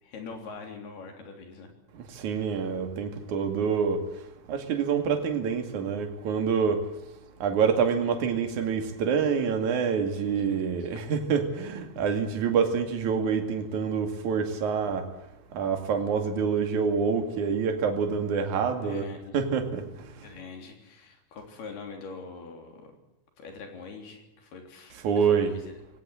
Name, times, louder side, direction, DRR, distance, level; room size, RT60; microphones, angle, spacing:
voice 1, 0.0-1.7 10.5-11.0 18.8-19.5 20.2-23.0 23.4-25.7, left 4 dB, 65° left, 4 dB, 5.4 m, -43 dB
voice 2, 1.9-4.0 4.5-6.9 7.4-15.1 15.5-19.0 19.3-20.3 25.0-25.5, right 6 dB, 50° right, 6 dB, 3.4 m, -27 dB
20.5 x 17.5 x 7.8 m, 0.94 s
omnidirectional pair, 4.9 m